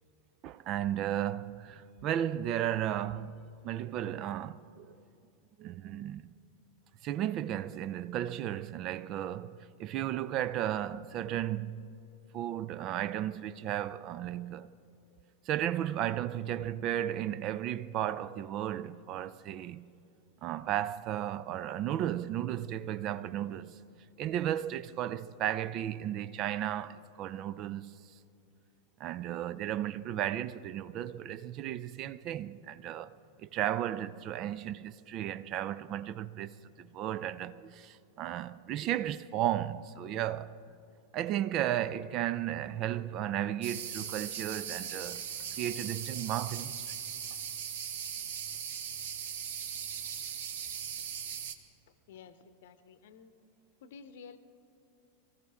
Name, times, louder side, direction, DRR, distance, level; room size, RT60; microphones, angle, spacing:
voice 1, 0.4-5.0 5.6-6.3 7.0-11.9 12.3-14.7 15.5-19.9 20.4-23.8 24.2-28.0 29.0-40.6 41.1-45.3 45.6-46.9, right 11 dB, 35° right, 0.4 m, -34 dB
sound 1, 43.6-51.5, right 8 dB, 55° right, 0.9 m, -39 dB
voice 2, 51.9-53.3 53.8-54.4, left 6 dB, 55° left, 0.8 m, -52 dB
23.5 x 14.5 x 3.6 m
figure-of-eight pair, 90°, 0 cm